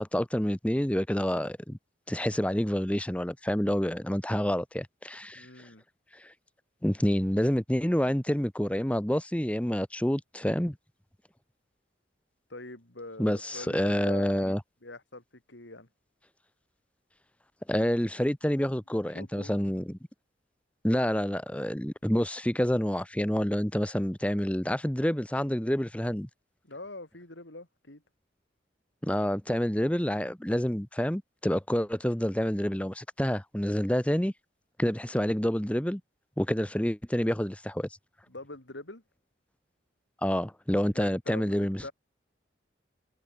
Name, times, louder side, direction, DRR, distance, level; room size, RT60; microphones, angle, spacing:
voice 1, 0.0-1.8 2.1-5.7 6.1-6.3 6.8-10.8 13.2-14.6 17.7-20.0 20.8-26.3 29.0-34.3 34.8-36.0 36.4-37.9 40.2-41.8, equal, 5° left, 1.0 m, -28 dB
voice 2, 5.3-5.8 12.5-14.5 14.8-15.9 19.1-19.5 26.6-28.0 38.3-39.0 40.9-41.6 41.8-41.9, left 2 dB, 90° left, 4.0 m, -44 dB
head